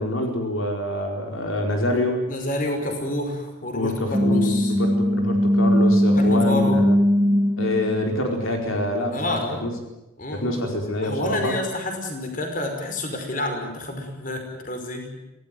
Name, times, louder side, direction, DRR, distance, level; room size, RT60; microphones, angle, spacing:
voice 1, 0.0-2.2 3.7-7.0 7.6-9.7 10.3-11.6, left 1 dB, 75° left, 3 dB, 4.6 m, -26 dB
voice 2, 2.3-4.8 6.2-6.8 9.1-9.7 10.2-10.5 11.0-15.2, left 1 dB, 40° left, 4 dB, 5.4 m, -29 dB
sound 1, 4.1-9.3, equal, 20° right, 1.0 m, -20 dB
26.0 x 18.0 x 9.3 m, 0.99 s
head